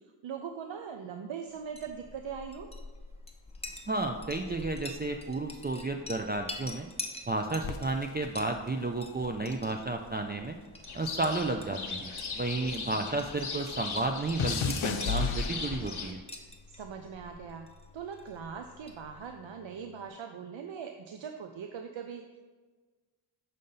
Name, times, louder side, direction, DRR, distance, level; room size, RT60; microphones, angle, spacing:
voice 1, 0.2-2.7 12.6-13.1 16.7-17.7 17.9-22.4, right 7 dB, 70° right, 5 dB, 0.6 m, -41 dB
Chink clink, 1.6-19.4, left 2 dB, 15° left, 0.8 m, -47 dB
voice 2, 3.9-6.9 7.3-10.6 10.9-14.6 14.8-16.2, right 2 dB, 20° right, 3 dB, 0.4 m, -32 dB
sound 1, 7.6-10.1 10.4-13.1 13.3-16.1 16.9-17.3, left 5 dB, 85° left, 0.6 m, -35 dB
sound 2, 10.9-16.1, left 4 dB, 55° left, 1.1 m, -39 dB
6.6 x 3.9 x 5.5 m, 1.4 s
wide cardioid pair, 65°, 48 cm